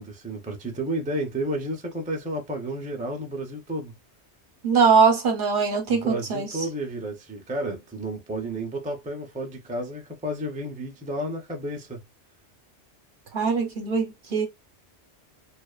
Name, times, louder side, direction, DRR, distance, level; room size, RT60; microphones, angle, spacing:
voice 1, 0.0-3.9 5.9-12.0, right 1 dB, 10° right, 0.3 m, -31 dB
voice 2, 4.6-6.5 13.3-14.5, right 5 dB, 50° right, 0.8 m, -21 dB
2.5 x 2.4 x 2.3 m
omnidirectional pair, 1.2 m